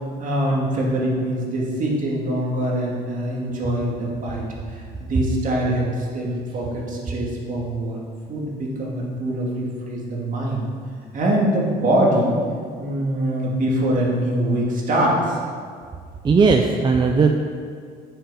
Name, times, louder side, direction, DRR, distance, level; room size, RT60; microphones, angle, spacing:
voice 1, 0.2-8.0 8.3-10.7 11.1-12.4 12.8-15.4, right 1 dB, 50° right, -3 dB, 2.3 m, -23 dB
voice 2, 16.2-17.4, right 4 dB, 25° right, 3 dB, 0.5 m, -17 dB
9.8 x 6.4 x 4.9 m, 2.1 s
cardioid pair, 110°, 17 cm